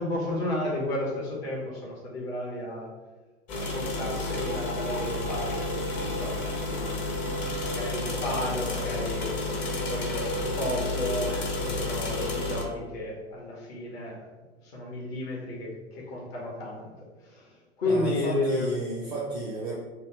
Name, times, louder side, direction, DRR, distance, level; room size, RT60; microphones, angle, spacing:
voice 1, 0.0-2.9 3.6-7.2 7.6-9.3 9.7-14.2 14.6-18.7, left 1 dB, 60° left, -3 dB, 1.2 m, -33 dB
sound 1, 3.5-12.6, left 2 dB, 30° left, 0.6 m, -31 dB
voice 2, 17.8-19.7, right 2 dB, 15° right, -4 dB, 0.3 m, -33 dB
3.2 x 2.3 x 3.1 m, 1.3 s
figure-of-eight pair, 90°, 35 cm